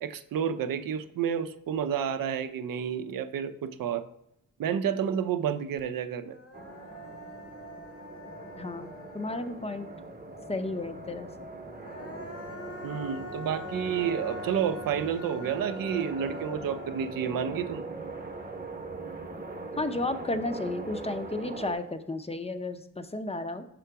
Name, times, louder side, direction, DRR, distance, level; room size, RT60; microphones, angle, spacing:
voice 1, 0.0-4.1 4.6-6.4 12.8-17.8, right 8 dB, 85° right, 11 dB, 0.5 m, -30 dB
Human voice, 5.8-5.9 6.2-9.9 11.6-18.8, left 2 dB, 45° left, 0.8 m, -45 dB
sound 1, 6.5-21.7, right 2 dB, 30° right, 0.8 m, -41 dB
voice 2, 8.6-9.9 10.5-11.3 19.7-23.6, left 2 dB, 20° left, 9 dB, 0.5 m, -33 dB
5.7 x 3.8 x 4.5 m, 0.79 s
cardioid pair, 70°, 33 cm